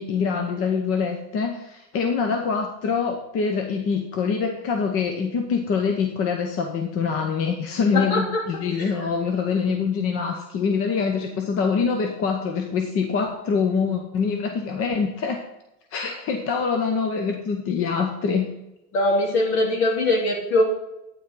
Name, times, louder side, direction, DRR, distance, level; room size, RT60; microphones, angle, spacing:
voice 1, 0.0-15.4 15.9-18.5, left 5 dB, 40° left, 4 dB, 1.0 m, -25 dB
voice 2, 7.9-8.4 8.8-8.9 18.9-20.6, left 2 dB, 70° left, -1 dB, 3.4 m, -21 dB
11.5 x 9.3 x 3.8 m, 0.92 s
cardioid pair, 155°, 35 cm